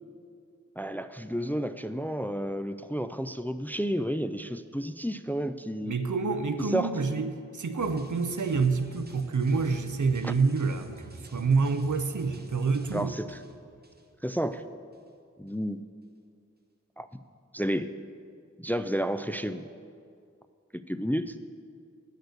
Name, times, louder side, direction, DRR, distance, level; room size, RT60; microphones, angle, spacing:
voice 1, 0.8-6.0 6.7-6.9 10.2-10.3 12.9-13.4 14.2-14.6 15.4-15.8 17.0-17.1 17.5-17.9 18.6-19.7 20.9-21.3, equal, 5° left, 11 dB, 0.3 m, -31 dB
voice 2, 5.8-13.1, right 4 dB, 85° right, 9 dB, 0.6 m, -27 dB
sound 1, 7.8-14.6 14.9-15.1, right 2 dB, 35° right, 0.8 m, -50 dB
8.1 x 6.6 x 7.9 m, 2.3 s
wide cardioid pair, 45°, 30 cm